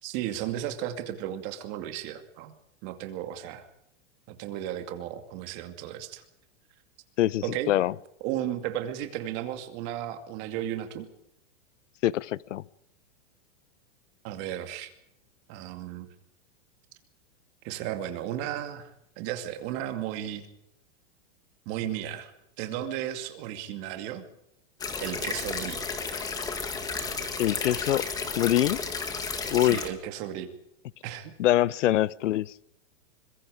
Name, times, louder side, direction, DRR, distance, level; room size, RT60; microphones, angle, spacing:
voice 1, 0.0-2.5 2.8-3.7 4.3-6.2 7.4-7.8 8.2-11.1 14.2-14.9 15.5-16.1 17.6-18.9 19.2-20.5 21.7-22.3 22.6-24.2 25.0-25.8 29.6-30.5 31.0-31.3, right 11 dB, 30° right, 2.4 m, -34 dB
voice 2, 7.2-7.9 12.0-12.6 27.4-28.0 28.4-28.8 29.5-29.8 31.4-32.5, left 13 dB, 80° left, 0.8 m, -24 dB
sound 1, 24.8-29.9, left 5 dB, 10° left, 1.8 m, -33 dB
25.0 x 22.5 x 5.0 m
supercardioid pair, 175°, 36 cm